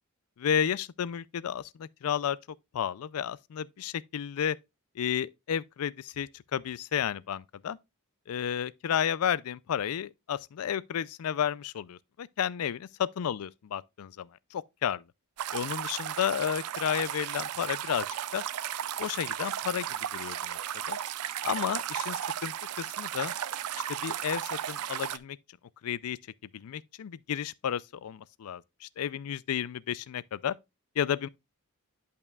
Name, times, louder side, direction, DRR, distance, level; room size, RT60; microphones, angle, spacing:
voice 1, 0.4-2.4 2.7-4.6 5.0-7.8 8.3-15.0 15.5-18.1 18.3-18.4 19.0-19.9 20.1-20.6 20.9-21.0 21.4-21.8 22.1-22.2 22.4-23.3 24.0-25.4 25.8-26.2 26.5-30.5 31.0-31.3, left 9 dB, 75° left, 0.4 m, -32 dB
sound 1, 15.4-25.2, right 10 dB, 85° right, 0.4 m, -35 dB
10.5 x 5.6 x 2.3 m
head